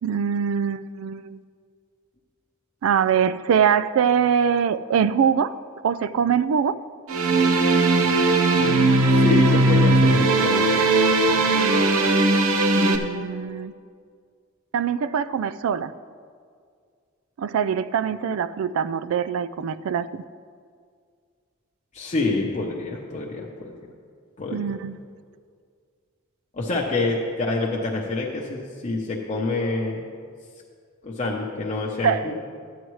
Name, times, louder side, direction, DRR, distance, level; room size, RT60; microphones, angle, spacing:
voice 1, 0.0-1.4 2.8-5.6 5.8-6.8 12.8-13.7 14.7-15.9 17.4-20.2 24.5-25.0 32.0-32.2, right 7 dB, 75° right, 15 dB, 0.3 m, -23 dB
sound 1, 7.1-13.0, right 2 dB, 90° right, 0.8 m, -18 dB
voice 2, 9.1-11.5 21.9-23.7 24.4-24.8 26.5-30.1 31.0-32.3, left 3 dB, 35° left, -2 dB, 0.7 m, -27 dB
13.5 x 9.2 x 3.1 m, 2.1 s
head